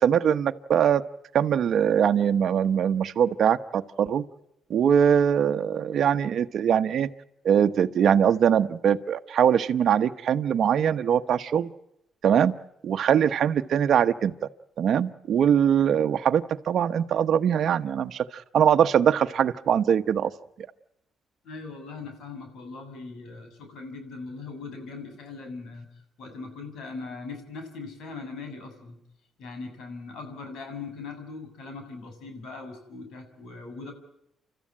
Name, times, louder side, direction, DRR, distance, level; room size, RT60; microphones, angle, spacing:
voice 1, 0.0-1.0 1.3-4.2 4.7-7.1 7.4-11.7 12.2-12.5 12.8-14.3 14.8-20.3, right 8 dB, 65° right, 8 dB, 1.0 m, -22 dB
voice 2, 21.4-25.9 26.2-29.0 29.4-33.9, left 4 dB, 75° left, 6 dB, 7.5 m, -40 dB
30.0 x 14.0 x 10.0 m, 0.80 s
cardioid pair, 90°, 0 cm